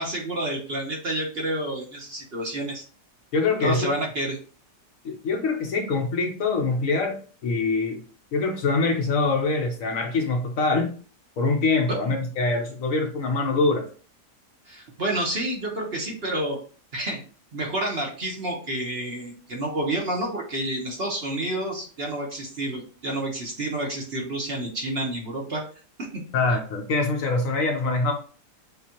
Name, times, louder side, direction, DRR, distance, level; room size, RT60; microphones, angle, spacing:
voice 1, 0.0-2.8 3.6-4.4 12.0-12.1 14.7-16.6 16.9-17.2 17.5-25.6 26.0-26.2 26.5-26.6, right 1 dB, 45° right, -1 dB, 1.0 m, -29 dB
voice 2, 3.3-3.9 5.0-8.0 8.3-10.9 11.4-13.9 26.3-28.1, left 3 dB, 65° left, 4 dB, 1.0 m, -24 dB
6.9 x 2.4 x 2.9 m, 0.39 s
omnidirectional pair, 1.8 m